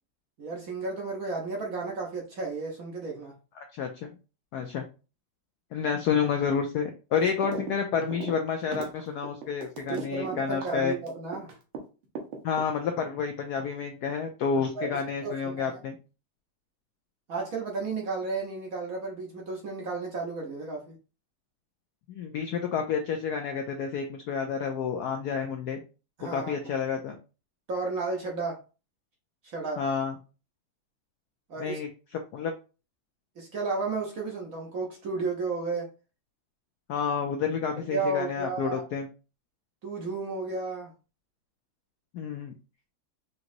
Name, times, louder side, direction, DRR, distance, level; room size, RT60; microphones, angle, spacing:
voice 1, 0.4-3.4 7.4-7.6 9.9-11.5 14.7-14.9 15.2-15.8 17.3-21.0 26.2-26.5 27.7-28.6 29.4-29.8 31.5-31.8 33.4-35.9 37.9-38.8 39.8-40.9, right 3 dB, 55° right, 1.0 m, -33 dB
voice 2, 3.6-4.2 4.5-4.9 5.7-11.0 12.4-15.9 22.1-25.8 26.3-27.1 29.8-30.2 31.6-32.5 36.9-39.1 42.1-42.5, left 6 dB, 80° left, 0.9 m, -30 dB
sound 1, 7.4-7.7 8.0-11.8 12.2-13.0, right 5 dB, 75° right, 1.7 m, -37 dB
5.1 x 2.9 x 2.6 m
omnidirectional pair, 2.3 m